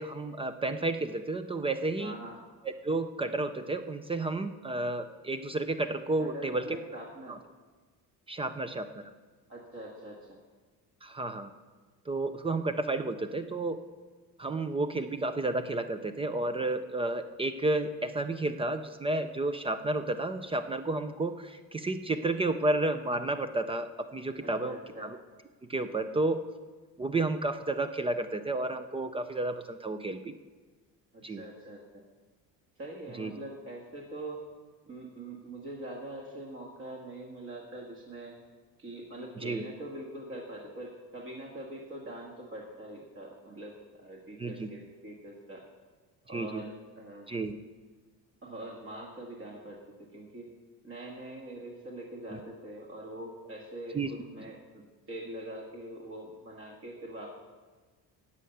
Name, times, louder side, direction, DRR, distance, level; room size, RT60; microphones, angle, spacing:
voice 1, 0.0-2.1 2.6-6.6 7.3-7.4 8.3-9.0 11.0-11.5 12.1-13.8 14.4-25.2 25.7-26.4 27.0-30.3 31.2-31.4 33.2-33.3 39.4-39.6 44.4-44.7 46.3-46.6 47.3-47.5 52.3-52.4 53.9-54.1, right 2 dB, 15° right, 9 dB, 0.4 m, -31 dB
voice 2, 2.0-2.4 6.2-7.4 9.5-10.4 24.4-25.1 31.1-32.0 32.8-34.4 34.8-38.3 38.8-45.6 46.2-47.3 48.4-50.5 50.8-57.3, right 1 dB, 35° right, -2 dB, 1.7 m, -43 dB
15.0 x 5.5 x 9.2 m, 1.4 s
cardioid pair, 170°, 36 cm